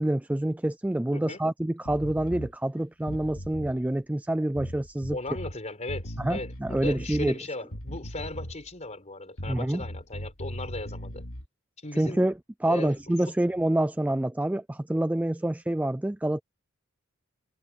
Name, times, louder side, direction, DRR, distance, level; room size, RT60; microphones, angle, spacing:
voice 1, 0.0-5.2 6.2-7.3 9.5-9.8 12.0-12.3 12.6-16.4, right 1 dB, 5° right, 0.3 m, -27 dB
sound 1, 1.8-2.5 3.0-3.8 4.6-5.6 5.9-7.3 7.7-8.7 9.4-11.4, equal, 70° left, 3.3 m, -38 dB
voice 2, 5.1-11.3 11.8-12.2 12.7-13.0 13.3-13.4, left 2 dB, 30° left, 4.3 m, -37 dB
head